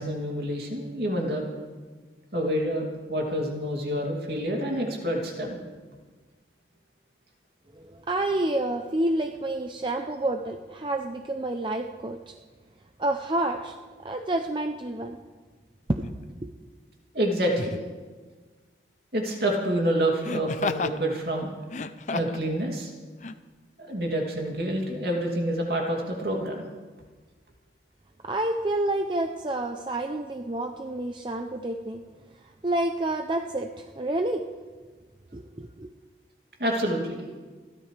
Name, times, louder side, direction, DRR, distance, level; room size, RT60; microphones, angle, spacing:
voice 1, 0.0-1.5 2.3-5.6 17.1-17.8 19.1-21.5 22.1-22.9 23.8-26.7 36.6-37.2, right 1 dB, 60° right, 0 dB, 2.8 m, -27 dB
voice 2, 7.7-12.3 13.0-13.8 14.0-15.2 15.9-16.5 28.2-32.0 32.6-34.5 35.3-35.9, right 1 dB, 25° right, 4 dB, 0.6 m, -29 dB
Laughter, 16.0-16.2 17.5-17.9 20.2-21.0 21.6-22.5 23.2-23.3, left 3 dB, 40° left, 0.5 m, -32 dB
29.0 x 12.5 x 3.4 m, 1.4 s
head